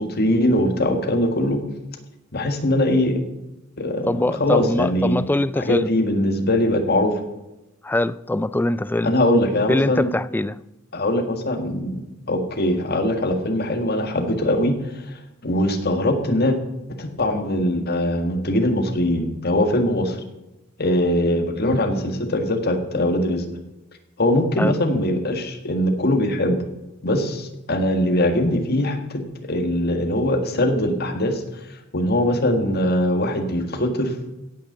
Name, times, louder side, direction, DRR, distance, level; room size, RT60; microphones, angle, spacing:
voice 1, 0.0-1.6 2.3-3.2 3.8-5.2 5.6-7.1 9.0-10.1 10.9-16.6 17.0-20.2 20.8-23.5 24.2-26.6 27.0-29.2 29.5-31.4 31.7-34.1, left 1 dB, 50° left, 5 dB, 1.8 m, -21 dB
voice 2, 4.0-5.9 7.8-9.2 9.7-10.6 24.6-24.8, left 2 dB, 10° left, 16 dB, 0.3 m, -23 dB
16.5 x 6.6 x 6.8 m, 0.95 s
head